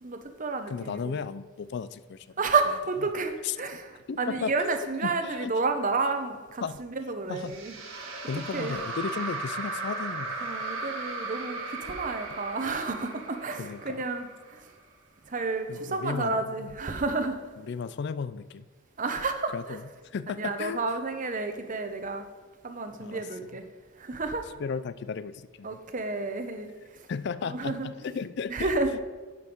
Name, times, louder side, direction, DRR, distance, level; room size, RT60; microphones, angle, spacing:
voice 1, 0.0-1.2 2.4-7.7 8.3-8.8 10.4-14.7 15.2-17.4 19.0-19.8 20.4-22.2 22.6-23.7 23.9-24.5 25.6-27.1 27.4-27.9 28.5-29.0, right 3 dB, 35° right, 7 dB, 0.8 m, -31 dB
voice 2, 0.7-2.3 3.4-3.5 4.1-4.7 5.0-5.5 6.6-6.8 7.3-7.6 8.3-10.4 13.6-14.0 15.7-16.7 17.7-18.7 19.5-19.8 20.1-20.8 23.0-23.2 24.6-25.7 27.1-28.7, left 5 dB, 50° left, 15 dB, 0.3 m, -34 dB
sound 1, 7.4-14.7, right 3 dB, 65° right, 1.7 m, -36 dB
10.5 x 5.5 x 5.4 m, 1.3 s
head